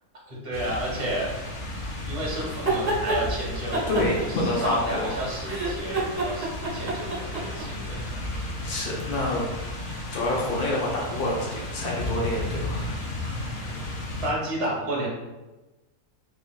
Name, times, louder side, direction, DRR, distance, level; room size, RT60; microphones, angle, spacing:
voice 1, 0.3-1.3 2.1-3.9 4.2-6.5 6.7-8.2 13.6-13.8 14.2-15.1, right 1 dB, 30° right, -5 dB, 0.7 m, -31 dB
sound 1, 0.5-14.3, left 1 dB, 60° left, 0.5 m, -34 dB
sound 2, 2.5-3.2 3.7-5.1 5.4-7.6, right 3 dB, 60° right, 0.4 m, -27 dB
voice 2, 3.9-5.3 7.8-9.4 10.1-13.1, left 1 dB, 85° left, -3 dB, 1.3 m, -28 dB
3.7 x 2.2 x 2.3 m, 1.1 s
omnidirectional pair, 1.6 m